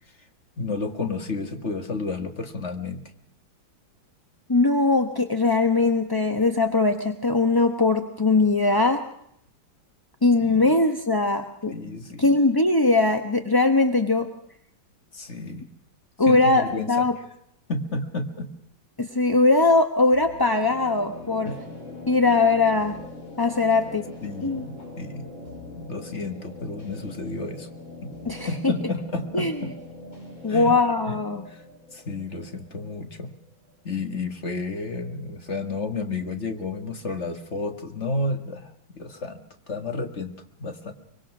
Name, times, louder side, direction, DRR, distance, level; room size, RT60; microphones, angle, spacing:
voice 1, 0.6-3.0 10.4-10.7 11.7-12.4 15.1-15.7 16.3-17.1 17.7-18.5 21.4-21.6 24.2-25.3 25.8-27.7 28.0-28.1 28.5-29.8 30.5-30.8 31.1-31.2 31.5-31.6 31.9-33.3 33.8-39.4 39.7-40.9, left 3 dB, 35° left, 7 dB, 1.9 m, -31 dB
voice 2, 4.5-9.0 10.2-11.7 12.2-14.3 16.2-17.1 19.0-21.5 22.1-23.0 23.4-24.0 24.4-24.6 28.3-28.5 29.3-29.5 30.4-31.4, left 3 dB, 15° left, 6 dB, 0.8 m, -20 dB
sound 1, 20.1-33.8, left 1 dB, 80° left, 6.9 m, -42 dB
24.0 x 23.0 x 6.1 m, 0.72 s
omnidirectional pair, 2.1 m